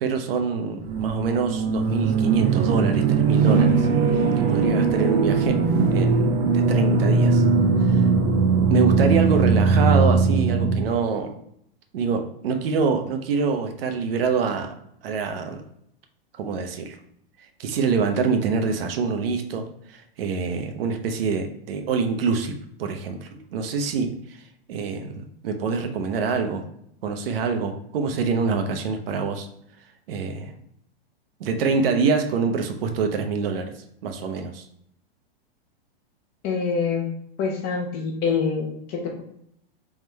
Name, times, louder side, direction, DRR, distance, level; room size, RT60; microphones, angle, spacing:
voice 1, 0.0-3.9 4.4-5.6 5.9-6.3 6.5-7.4 7.9-8.0 8.7-11.3 11.9-14.7 15.0-15.6 16.4-17.0 17.6-22.5 22.8-24.1 24.7-26.6 27.0-29.5 30.1-30.5 31.4-33.7 34.0-34.6, right 5 dB, 70° right, 5 dB, 0.7 m, -25 dB
sound 1, 0.9-10.8, right 4 dB, 25° right, 0.5 m, -20 dB
voice 2, 36.4-37.1 37.4-39.2, left 5 dB, 30° left, 1 dB, 0.7 m, -25 dB
3.6 x 3.2 x 3.1 m, 0.73 s
hypercardioid pair, 145°, 31 cm